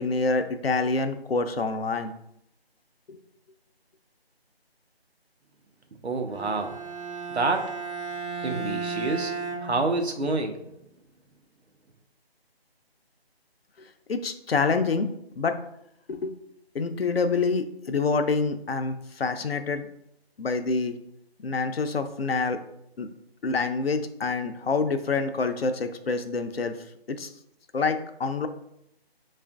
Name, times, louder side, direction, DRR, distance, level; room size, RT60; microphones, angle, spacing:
voice 1, 0.0-2.1 3.1-3.2 14.1-15.1 15.4-15.6 16.1-16.4 16.7-19.9 20.4-21.0 21.4-22.6 23.0-23.1 23.4-26.8 27.1-27.3 27.7-28.5, left 4 dB, 70° left, 8 dB, 0.5 m, -26 dB
voice 2, 6.0-6.8 7.3-7.7 8.4-9.3 9.6-10.6, right 3 dB, 85° right, 5 dB, 0.7 m, -27 dB
Bowed string instrument, 6.3-10.4, right 4 dB, 30° right, 0.5 m, -35 dB
5.8 x 2.4 x 2.3 m, 0.78 s
figure-of-eight pair, 165°, 32 cm